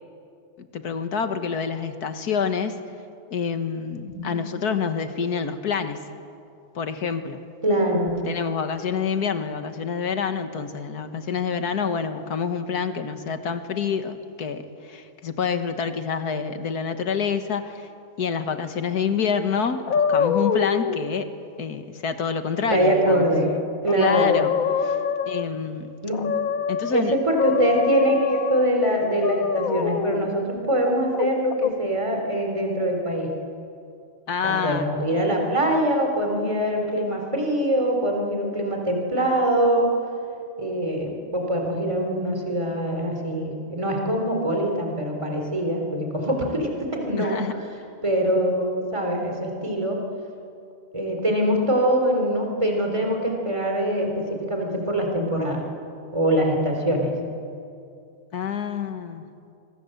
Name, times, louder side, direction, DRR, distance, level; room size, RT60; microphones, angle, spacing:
voice 1, 0.6-2.8 3.3-6.0 6.7-7.5 8.3-17.9 18.2-21.3 21.6-23.3 23.9-24.5 24.8-25.0 25.3-26.0 26.7-27.2 34.3-34.9 47.2-47.5 58.3-59.3, left 6 dB, 80° left, 9 dB, 2.0 m, -27 dB
voice 2, 7.6-8.2 22.7-23.5 23.8-24.4 26.0-26.2 26.9-33.3 34.4-39.9 40.6-47.4 48.0-50.0 50.9-55.6 56.1-57.1, right 1 dB, 20° right, 2 dB, 3.8 m, -23 dB
sound 1, 19.9-21.0 23.4-23.5 23.9-25.6 26.1-26.9 27.4-28.7 29.2-30.3 31.1-31.7, left 7 dB, 65° left, 1.4 m, -24 dB
26.5 x 24.0 x 7.9 m, 2.5 s
omnidirectional pair, 1.6 m